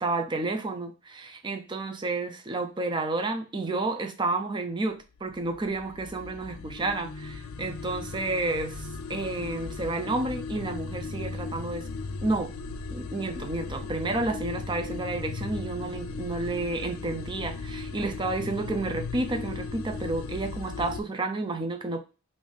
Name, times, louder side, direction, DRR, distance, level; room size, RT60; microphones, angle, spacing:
voice 1, 0.0-8.8 9.1-11.9 12.2-12.5 12.9-22.0, right 2 dB, 20° right, 0.4 m, -31 dB
sound 1, 5.0-21.0, left 4 dB, 85° left, 0.4 m, -37 dB
3.5 x 2.6 x 3.6 m
head